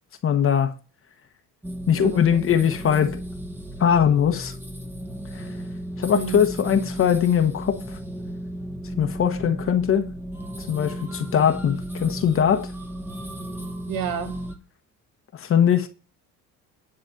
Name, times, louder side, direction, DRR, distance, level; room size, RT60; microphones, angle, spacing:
voice 1, 0.2-0.7 1.9-3.2 3.8-4.5 5.3-5.5 6.0-8.0 8.9-10.1 10.6-12.7 15.3-15.9, left 8 dB, 40° left, 1.1 m, -21 dB
sound 1, 1.6-14.6, right 1 dB, 5° right, 1.2 m, -34 dB
voice 2, 1.9-2.4 6.1-6.4 13.9-14.4, right 9 dB, 75° right, 1.9 m, -30 dB
10.5 x 4.2 x 7.5 m
cardioid pair, 150°, 34 cm